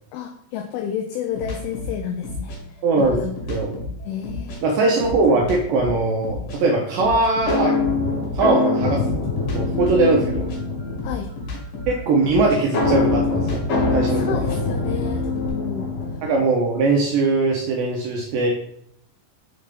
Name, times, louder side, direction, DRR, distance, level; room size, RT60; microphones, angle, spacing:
voice 1, 0.1-3.3 4.1-4.7 9.9-10.5 11.0-11.3 14.0-15.9, left 8 dB, 90° left, 5 dB, 2.1 m, -31 dB
sound 1, 1.4-4.6 4.9-8.5 9.0-15.5, left 2 dB, 60° left, 3.3 m, -33 dB
voice 2, 2.8-3.2 3.5-3.7 4.6-7.8 8.3-9.2 9.5-10.5 11.9-13.6 13.9-14.4 16.2-18.5, right 3 dB, 85° right, 0 dB, 1.9 m, -20 dB
sound 2, 7.5-11.2 12.7-16.3, left 3 dB, 45° left, 2.0 m, -23 dB
6.7 x 3.3 x 5.2 m, 0.69 s
omnidirectional pair, 5.0 m